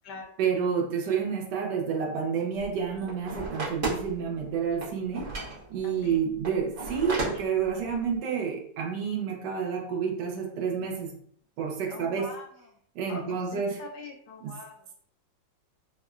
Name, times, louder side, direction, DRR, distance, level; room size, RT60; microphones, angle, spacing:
voice 1, 0.4-5.3 5.7-11.1 11.6-12.3 12.9-13.8, right 6 dB, 70° right, 1 dB, 1.3 m, -29 dB
sound 1, 2.6-4.4 4.7-8.1, right 2 dB, 45° right, 0.7 m, -35 dB
voice 2, 5.8-6.2 11.9-12.7 13.1-14.9, left 3 dB, 70° left, 1 dB, 1.1 m, -43 dB
3.6 x 2.1 x 2.3 m, 0.63 s
omnidirectional pair, 2.0 m